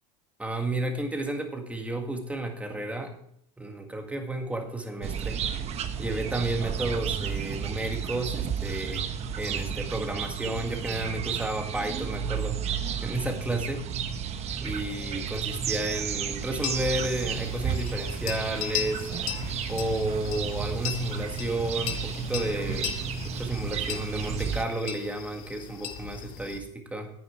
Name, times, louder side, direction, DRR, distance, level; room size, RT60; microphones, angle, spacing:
voice 1, 0.4-3.2 3.6-5.4 6.0-9.0 9.3-12.6 13.0-13.8 14.6-19.1 19.7-23.0 23.2-27.1, right 2 dB, 10° right, 4 dB, 1.8 m, -32 dB
sound 1, 5.0-24.6, right 7 dB, 40° right, 1.0 m, -32 dB
sound 2, 16.6-26.6, left 11 dB, 60° left, 1.2 m, -38 dB
9.4 x 9.3 x 4.5 m, 0.69 s
supercardioid pair, 115°, 17 cm